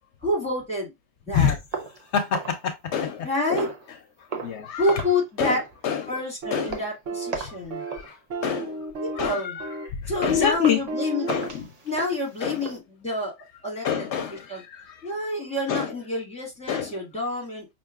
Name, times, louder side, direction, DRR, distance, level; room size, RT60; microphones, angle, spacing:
voice 1, 0.2-0.9 1.3-1.6 3.2-3.7 4.8-5.6 6.1-7.8 9.0-9.6 10.1-11.3 11.9-13.3 13.6-14.1 14.3-14.6 15.0-17.7, left 2 dB, 5° left, 1.7 m, -28 dB
sound 1, 1.7-3.2 3.6-3.9 4.3-4.6 4.9-5.2 5.5-5.7 6.1-6.3 6.7-6.9 7.3-7.6 7.9-8.1 8.5-8.8 9.2-9.3 9.8-9.9 10.5-10.9 11.3-12.8, right 4 dB, 40° right, 0.7 m, -36 dB
voice 2, 2.1-3.7 4.2-5.0 5.4-5.6 5.8-6.1 6.5-6.8 7.5-8.9 9.2-10.8 11.3-11.7 12.4-12.6 13.8-15.1 15.7-15.9 16.7-16.9, left 8 dB, 70° left, 0.9 m, -27 dB
sound 2, 6.4-6.7 7.1-7.4 7.7-8.0 8.3-9.3 9.6-9.9 10.2-10.5 10.9-11.5, right 2 dB, 85° right, 1.2 m, -32 dB
5.4 x 2.8 x 2.3 m
omnidirectional pair, 1.2 m